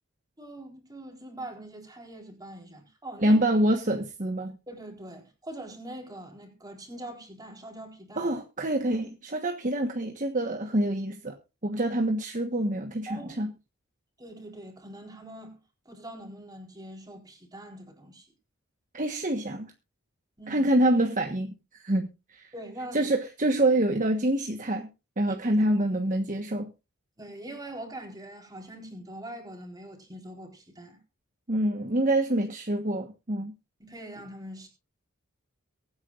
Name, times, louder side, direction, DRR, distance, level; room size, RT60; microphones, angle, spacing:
voice 1, 0.4-3.4 4.7-8.3 13.1-13.4 14.2-15.6 15.9-18.3 20.4-20.6 22.5-23.1 25.3-25.4 27.2-31.0 33.8-34.7, right 1 dB, 20° right, 4.1 m, -43 dB
voice 2, 3.2-4.6 8.2-11.4 11.6-13.5 18.9-19.7 20.5-22.5 22.9-24.9 25.2-26.7 31.5-33.5, right 1 dB, 35° right, 1.3 m, -26 dB
23.5 x 9.5 x 2.5 m
head